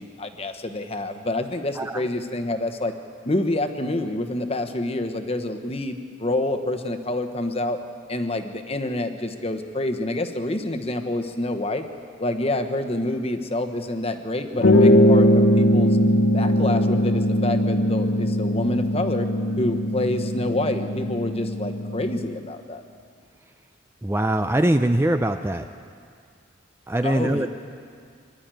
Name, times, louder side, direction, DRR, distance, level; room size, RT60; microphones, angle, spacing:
voice 1, 0.0-2.9 3.2-7.8 8.1-11.9 12.2-16.0 16.3-19.3 19.6-22.8 27.0-27.5, left 1 dB, 30° left, 7 dB, 1.1 m, -27 dB
sound 1, 14.6-22.3, equal, 80° left, 1.2 m, -20 dB
voice 2, 24.0-25.7 26.9-27.5, right 1 dB, 10° right, 7 dB, 0.4 m, -22 dB
24.5 x 11.5 x 9.1 m, 2.2 s
head